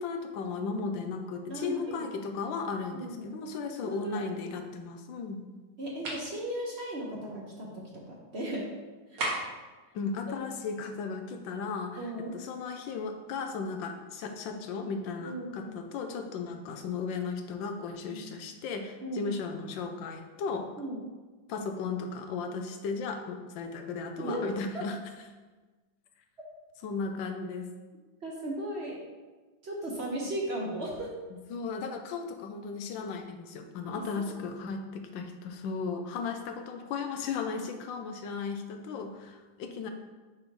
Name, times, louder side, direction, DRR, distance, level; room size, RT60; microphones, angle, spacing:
voice 1, 0.0-5.5 9.9-20.7 21.5-25.0 26.8-27.7 31.5-39.9, left 4 dB, 85° left, 5 dB, 1.4 m, -36 dB
voice 2, 1.5-2.1 2.9-3.5 3.8-4.3 5.8-8.6 9.1-9.2 10.3-10.4 12.0-12.3 15.2-15.7 18.0-18.4 19.0-19.3 20.8-21.1 24.2-24.4 24.7-24.8 28.2-29.0 29.6-31.1 33.9-34.3, right 1 dB, 45° right, -2 dB, 1.0 m, -36 dB
sound 1, 6.0-6.3 9.2-9.7, right 2 dB, 70° right, 2.0 m, -33 dB
5.4 x 5.1 x 4.6 m, 1.3 s
omnidirectional pair, 2.0 m